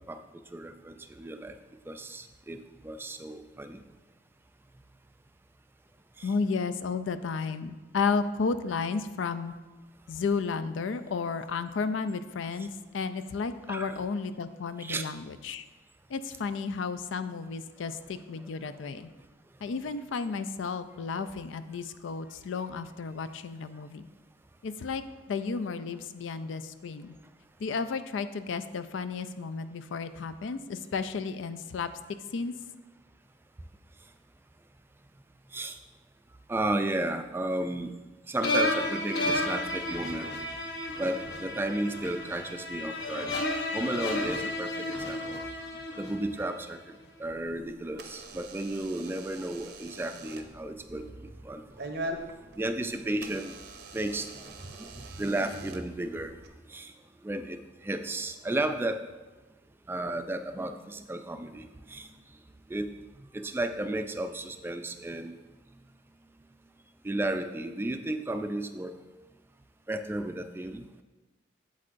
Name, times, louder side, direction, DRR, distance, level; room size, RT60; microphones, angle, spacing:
voice 1, 0.5-1.5 1.9-3.8 6.2-6.3 13.7-14.0 14.8-15.1 35.5-35.8 36.5-37.9 38.3-40.3 41.0-43.3 43.7-45.5 46.0-46.8 47.2-51.9 52.6-53.5 53.9-56.3 56.7-56.9 57.2-59.0 59.9-62.1 62.7-62.9 63.3-65.4 67.0-68.9 69.9-71.0, right 1 dB, 10° right, 8 dB, 0.3 m, -33 dB
voice 2, 6.2-9.5 10.1-15.6 16.1-19.1 19.6-24.1 24.6-27.1 27.6-31.9 32.3-32.5, left 5 dB, 85° left, 12 dB, 0.4 m, -33 dB
sound 1, 38.4-46.6, left 1 dB, 60° left, 0.9 m, -32 dB
Door / Alarm, 47.2-56.5, right 2 dB, 60° right, 0.7 m, -44 dB
8.1 x 7.5 x 2.5 m, 1.2 s
head